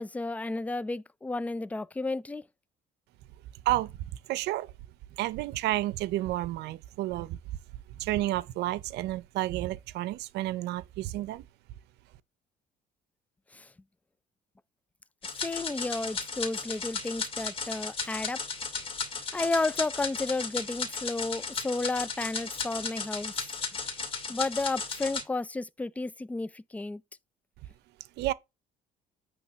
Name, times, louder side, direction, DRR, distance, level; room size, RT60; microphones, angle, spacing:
voice 1, 0.0-2.4 13.5-13.7 15.4-18.4 19.3-23.4 24.3-27.0, left 2 dB, 10° left, 0.3 m, -32 dB
voice 2, 4.3-4.7 5.2-7.4 8.0-11.4 28.2-28.3, right 16 dB, 80° right, 0.6 m, -30 dB
sound 1, 15.2-25.2, left 5 dB, 30° left, 2.1 m, -35 dB
9.2 x 3.1 x 5.6 m
cardioid pair, 110°, 17 cm